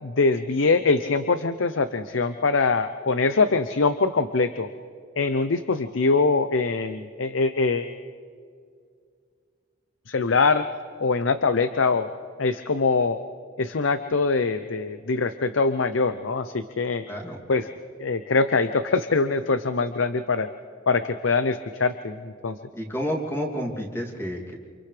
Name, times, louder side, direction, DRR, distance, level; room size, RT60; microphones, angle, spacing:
voice 1, 0.0-4.7 5.2-7.9 10.1-10.6 11.0-12.1 12.4-13.2 13.6-17.0 17.5-17.6 18.0-20.5 20.9-22.6, left 4 dB, 90° left, 10 dB, 0.7 m, -23 dB
voice 2, 17.1-17.4 22.7-24.5, equal, 15° left, -1 dB, 2.7 m, -30 dB
29.0 x 28.0 x 3.4 m, 2.2 s
head